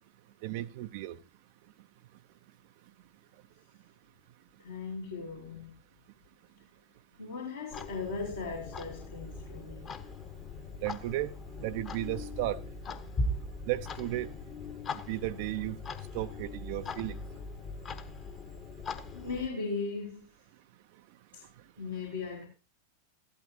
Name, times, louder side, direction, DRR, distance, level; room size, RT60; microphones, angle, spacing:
voice 1, 0.4-1.2 10.8-11.3 11.6-12.6 13.7-14.3 15.1-15.8 16.1-17.2, right 15 dB, 50° right, 0.5 m, -34 dB
voice 2, 4.6-5.7 7.2-9.9 19.1-20.3 21.3-21.4 21.8-22.5, left 4 dB, 75° left, 3.5 m, -38 dB
Clock, 7.7-19.5, left 2 dB, 25° left, 1.1 m, -40 dB
14.5 x 12.0 x 2.8 m
figure-of-eight pair, 90°, 0 cm